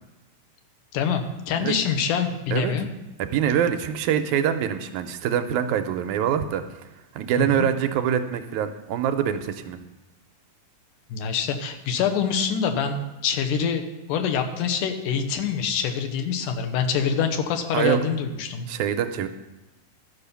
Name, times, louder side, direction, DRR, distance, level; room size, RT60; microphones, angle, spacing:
voice 1, 0.9-2.9 7.4-7.7 11.1-18.7, left 7 dB, 85° left, 5 dB, 2.5 m, -25 dB
voice 2, 3.2-6.6 7.2-9.8 17.7-18.0 18.7-19.3, right 9 dB, 80° right, 8 dB, 1.9 m, -24 dB
12.5 x 5.6 x 6.9 m, 1.1 s
omnidirectional pair, 3.6 m